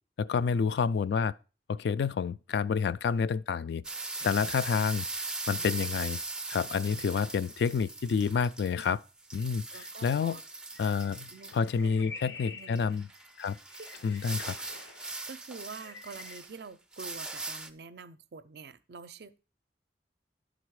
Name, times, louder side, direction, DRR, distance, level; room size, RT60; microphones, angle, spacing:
voice 1, 0.2-1.3 1.7-3.8 4.2-6.2 6.5-9.0 9.3-10.4 10.8-13.1 13.4-13.6 14.0-14.6, left 6 dB, 65° left, 0.3 m, -29 dB
sound 1, 3.8-8.9 9.2-11.6 12.8-16.6 16.9-17.7, right 3 dB, 5° right, 0.4 m, -40 dB
voice 2, 9.7-10.4 11.3-11.5 11.8-13.0 13.8-13.9 14.2-14.7 15.0-19.4, right 4 dB, 60° right, 0.5 m, -47 dB
sound 2, 10.7-15.2 15.6-16.4, left 5 dB, 85° left, 0.8 m, -48 dB
11.0 x 4.0 x 4.7 m
head